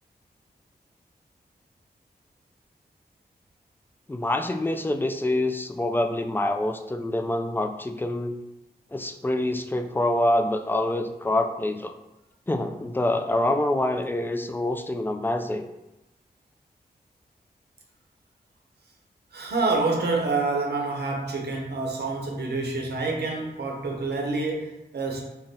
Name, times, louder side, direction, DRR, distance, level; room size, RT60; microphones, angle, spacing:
voice 1, 4.1-8.4 8.9-11.9 12.5-15.6, left 1 dB, 10° left, 5 dB, 0.3 m, -26 dB
voice 2, 19.3-25.2, right 3 dB, 70° right, 0 dB, 0.7 m, -27 dB
3.6 x 2.1 x 2.7 m, 0.95 s
cardioid pair, 40°, 17 cm